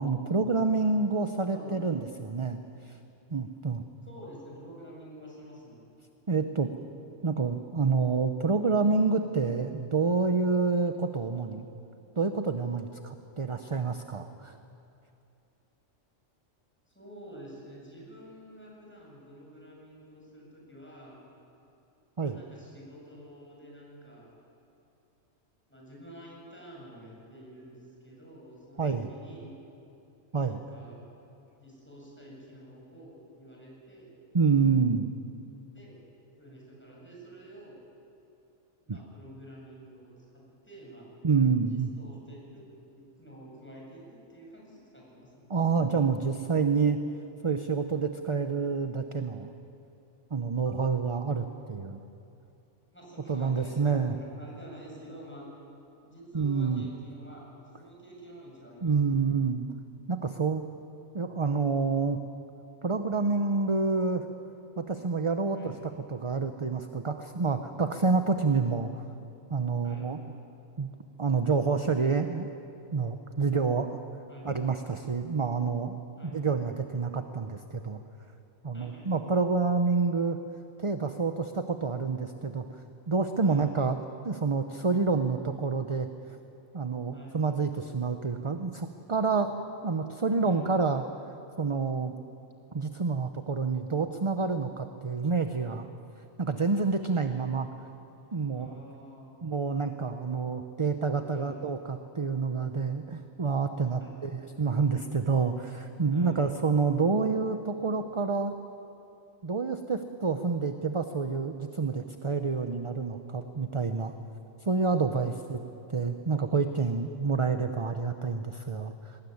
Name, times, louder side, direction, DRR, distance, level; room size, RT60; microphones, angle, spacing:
voice 1, 0.0-3.0 3.3-3.8 6.3-6.7 7.2-11.6 12.2-14.6 22.2-22.4 28.8-29.1 30.3-30.6 34.3-35.1 38.9-39.0 41.2-41.9 45.5-47.0 47.4-49.5 50.3-52.0 53.3-54.2 56.3-56.8 58.8-59.6 60.1-60.6 61.1-62.2 62.8-64.2 64.8-69.0 69.5-70.2 70.8-70.9 71.2-72.5 72.9-74.0 74.4-76.0 76.2-78.0 78.6-80.4 80.8-82.8 83.1-84.0 84.2-86.4 86.7-91.1 91.6-92.1 92.7-95.9 96.4-97.7 98.3-98.7 99.4-108.5 109.4-114.1 114.6-115.6 115.9-119.2, right 4 dB, 30° right, 7 dB, 0.7 m, -28 dB
voice 2, 1.4-1.8 4.0-5.8 16.9-21.3 22.2-24.4 25.7-29.6 30.4-31.0 31.6-34.1 35.7-36.0 36.4-37.8 38.8-41.1 41.7-42.6 42.9-45.5 52.9-55.5 56.0-59.1 65.5-65.8 69.8-70.2 74.3-74.5 76.2-76.4 78.7-79.3 83.4-83.7 87.1-87.5 90.4-90.7 98.5-99.4 101.3-101.6 104.0-104.6 106.1-106.5 115.1-115.4, equal, 10° left, -4 dB, 8.0 m, -49 dB
22.5 x 20.0 x 9.5 m, 2.7 s
omnidirectional pair, 1.4 m